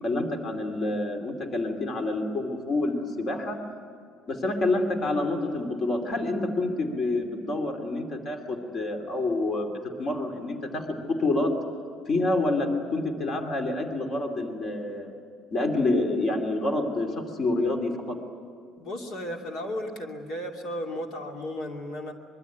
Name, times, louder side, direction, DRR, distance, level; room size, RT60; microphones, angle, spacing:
voice 1, 0.0-3.6 4.3-9.7 10.0-11.5 12.1-15.1 15.5-18.2, left 2 dB, 35° left, 4 dB, 2.7 m, -27 dB
voice 2, 18.8-22.1, left 1 dB, 55° left, 2 dB, 2.6 m, -34 dB
25.0 x 23.0 x 9.2 m, 2.4 s
cardioid pair, 180°, 0 cm